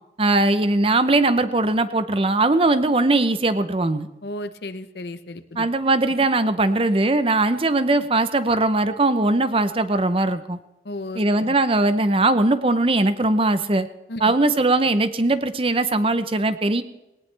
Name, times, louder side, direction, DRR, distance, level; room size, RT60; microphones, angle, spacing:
voice 1, 0.2-4.1 5.6-10.6 11.2-13.9 14.2-16.8, right 2 dB, 30° right, 11 dB, 0.7 m, -20 dB
voice 2, 4.2-5.7 10.8-11.5 14.1-14.3, left 1 dB, 65° left, 11 dB, 0.8 m, -34 dB
18.5 x 18.5 x 3.4 m, 0.96 s
head